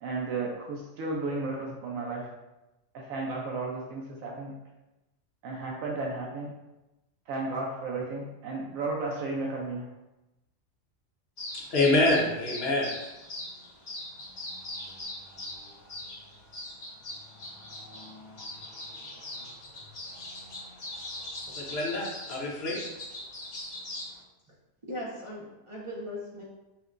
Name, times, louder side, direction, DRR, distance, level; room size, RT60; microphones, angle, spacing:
voice 1, 0.0-2.3 2.9-4.5 5.4-6.5 7.3-9.9, right 3 dB, 85° right, -1 dB, 1.0 m, -33 dB
sound 1, 11.4-24.2, left 1 dB, 70° left, 1.6 m, -41 dB
voice 2, 11.5-12.9 21.5-22.8, left 2 dB, 55° left, -4 dB, 1.0 m, -26 dB
voice 3, 24.9-26.4, left 1 dB, 60° right, -5 dB, 0.3 m, -38 dB
5.7 x 2.1 x 2.5 m, 1.0 s
omnidirectional pair, 1.4 m